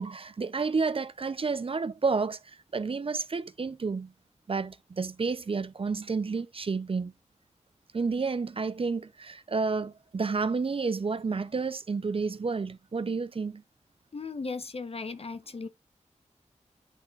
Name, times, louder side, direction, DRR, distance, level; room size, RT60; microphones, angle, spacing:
voice 1, 0.0-4.1 4.5-7.1 7.9-13.6, right 4 dB, 50° right, 0.6 m, -30 dB
voice 2, 14.1-15.7, left 4 dB, 55° left, 1.0 m, -36 dB
9.9 x 4.4 x 2.5 m
wide cardioid pair, 65°, 12 cm